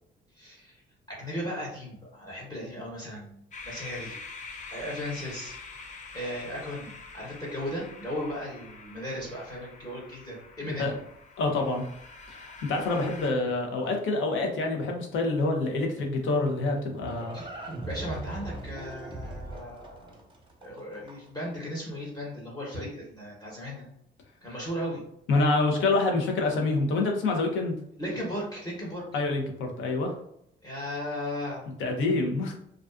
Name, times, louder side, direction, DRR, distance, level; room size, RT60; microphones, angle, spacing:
voice 1, 0.4-0.7 1.1-3.4 3.6-4.2 4.7-5.6 6.1-10.9 17.3-20.2 20.6-23.9 24.4-25.0 28.0-29.0 30.6-31.6, equal, 20° left, -4 dB, 0.9 m, -36 dB
sound 1, 3.5-13.3, left 4 dB, 40° left, 0.4 m, -45 dB
voice 2, 11.4-11.8 12.3-17.4 25.3-27.8 29.1-30.1 31.8-32.5, left 3 dB, 80° left, 3 dB, 0.6 m, -27 dB
Livestock farm animals working animals, 16.7-21.4, right 2 dB, 25° right, 0.7 m, -40 dB
2.3 x 2.3 x 2.3 m, 0.74 s
cardioid pair, 90°, 20 cm